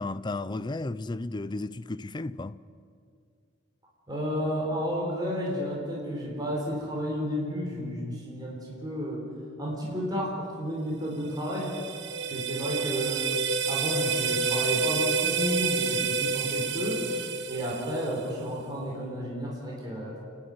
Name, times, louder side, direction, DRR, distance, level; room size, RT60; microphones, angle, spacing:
voice 1, 0.0-2.6, left 2 dB, 25° left, 0.5 m, -33 dB
voice 2, 4.1-9.2 9.6-11.7 12.3-13.3 13.7-20.2, equal, 20° right, 4.4 m, -32 dB
sound 1, 11.3-18.3, right 4 dB, 60° right, 1.1 m, -29 dB
29.0 x 11.0 x 9.4 m
head